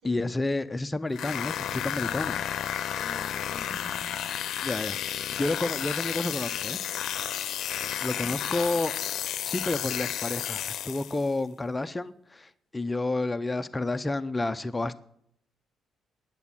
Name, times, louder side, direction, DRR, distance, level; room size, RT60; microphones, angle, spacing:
voice 1, 0.0-2.4 4.6-5.0 5.3-6.8 8.0-9.1 9.4-15.0, left 2 dB, 15° left, 12 dB, 0.6 m, -30 dB
sound 1, 1.1-11.3, left 10 dB, 70° left, 0.6 m, -32 dB
voice 2, 2.9-4.2, right 1 dB, 70° right, 3 dB, 4.5 m, -48 dB
10.5 x 8.3 x 7.3 m, 0.70 s
cardioid pair, 90°, 0 cm